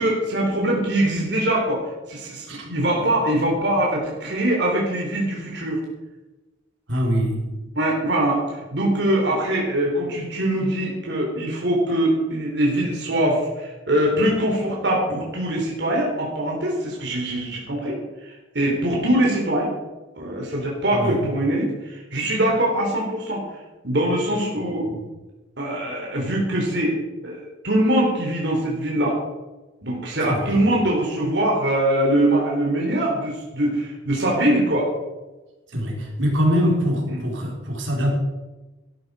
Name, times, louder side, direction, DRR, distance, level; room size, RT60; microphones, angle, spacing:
voice 1, 0.0-1.8 2.1-5.8 7.8-19.7 20.2-23.4 23.8-24.9 25.6-26.9 27.2-29.2 29.8-34.9 37.1-37.2, right 1 dB, 60° right, -2 dB, 3.6 m, -22 dB
voice 2, 6.9-7.7 20.9-21.2 24.6-25.0 30.3-30.6 35.7-38.1, equal, 80° right, -1 dB, 4.1 m, -24 dB
13.5 x 12.5 x 4.9 m, 1.1 s
head